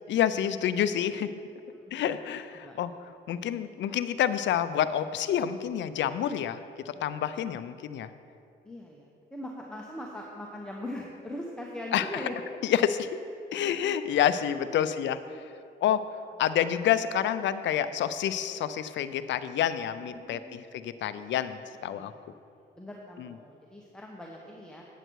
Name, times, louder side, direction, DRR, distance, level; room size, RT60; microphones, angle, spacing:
voice 1, 0.1-1.3 1.9-2.9 3.3-6.6 6.9-8.1 11.9-12.0 12.6-13.1 13.5-15.2 15.8-16.0 16.4-22.1, left 10 dB, 65° left, 13 dB, 0.5 m, -28 dB
voice 2, 2.2-2.8 6.9-7.0 8.6-12.4 14.6-15.6 20.1-20.8 21.9-22.2 22.7-24.8, left 1 dB, 5° left, -1 dB, 1.0 m, -41 dB
9.0 x 7.8 x 4.6 m, 2.7 s
cardioid pair, 90°, 20 cm